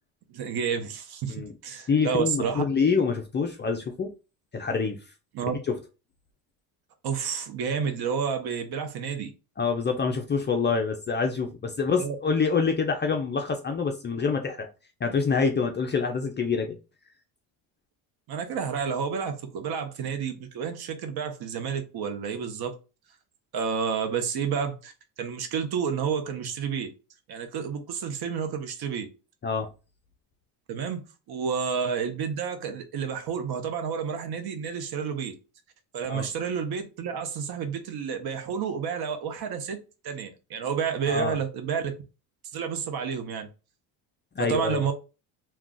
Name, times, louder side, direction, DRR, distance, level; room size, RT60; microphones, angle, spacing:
voice 1, 0.3-2.6 5.3-5.5 7.0-9.3 12.0-12.2 18.3-22.8 23.5-24.9 25.2-26.9 27.3-29.1 30.7-35.4 35.9-41.9 42.5-43.5 44.4-44.9, right 6 dB, 50° right, 0.8 m, -30 dB
voice 2, 1.9-4.1 4.5-5.0 5.7-5.8 9.6-14.7 15.0-16.8 29.4-29.7 36.1-36.3 41.1-41.4 44.4-44.8, left 5 dB, 25° left, 0.4 m, -26 dB
2.3 x 2.3 x 3.8 m
supercardioid pair, 85°, 48 cm